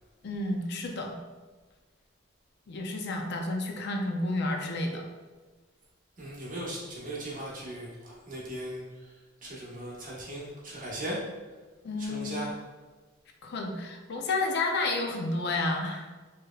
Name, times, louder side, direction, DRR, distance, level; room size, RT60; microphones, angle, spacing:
voice 1, 0.2-1.1 2.7-5.0 11.8-12.4 13.4-16.1, left 2 dB, 55° left, 3 dB, 0.5 m, -31 dB
voice 2, 6.2-11.2 12.0-12.5, right 1 dB, 40° right, -6 dB, 1.2 m, -38 dB
4.7 x 3.0 x 2.3 m, 1.3 s
head